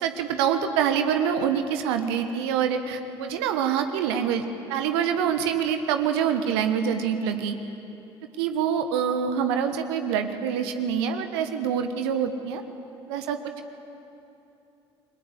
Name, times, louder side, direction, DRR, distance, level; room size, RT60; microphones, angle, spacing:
voice 1, 0.0-7.6 8.4-12.6 13.1-13.5, right 8 dB, 70° right, 7 dB, 1.3 m, -25 dB
29.5 x 22.0 x 8.1 m, 2.9 s
figure-of-eight pair, 55°, 14 cm